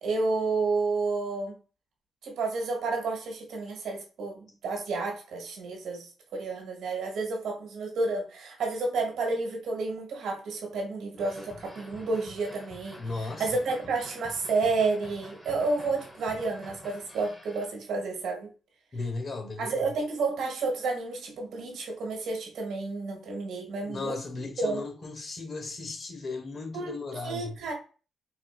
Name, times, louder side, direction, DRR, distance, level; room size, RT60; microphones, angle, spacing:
voice 1, 0.0-1.6 2.2-18.5 19.6-24.2 24.6-24.8 26.7-27.0 27.2-27.7, right 3 dB, 80° right, 1.3 m, -30 dB
sound 1, 11.2-17.7, left 1 dB, 10° left, 1.0 m, -48 dB
voice 2, 13.0-13.5 18.9-19.8 23.8-27.6, left 3 dB, 50° left, 1.1 m, -36 dB
4.1 x 2.6 x 2.4 m
cardioid pair, 75°, 0 cm